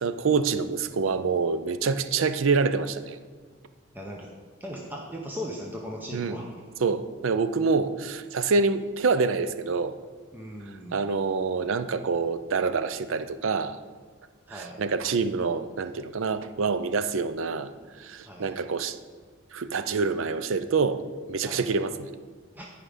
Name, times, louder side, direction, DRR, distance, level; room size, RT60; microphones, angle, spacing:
voice 1, 0.0-3.2 6.1-6.4 6.8-10.0 10.9-13.8 14.5-17.7 18.0-19.0 19.5-21.0 21.3-22.1, right 4 dB, 75° right, 11 dB, 0.5 m, -26 dB
voice 2, 3.9-4.3 4.6-6.5 10.3-11.0 14.5-14.8 17.8-18.5 21.4-21.7 22.5-22.7, equal, 10° right, -1 dB, 0.7 m, -38 dB
11.5 x 5.0 x 5.0 m, 1.5 s
head